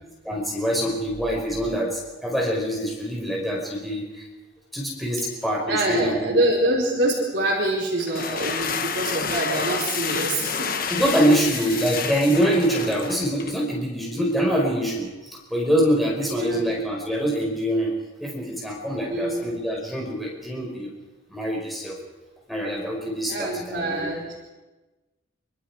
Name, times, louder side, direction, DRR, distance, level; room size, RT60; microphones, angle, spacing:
voice 1, 0.2-4.3 4.7-6.4 10.9-17.9 18.2-20.9 21.3-22.0 22.5-24.1, equal, ahead, -3 dB, 5.5 m, -25 dB
voice 2, 5.7-10.8 11.2-11.9 16.3-16.6 19.1-19.5 23.3-24.3, right 1 dB, 65° right, -3 dB, 4.8 m, -25 dB
sound 1, 8.0-13.6, left 5 dB, 50° left, 1.5 m, -29 dB
26.5 x 25.5 x 5.1 m, 1.1 s
head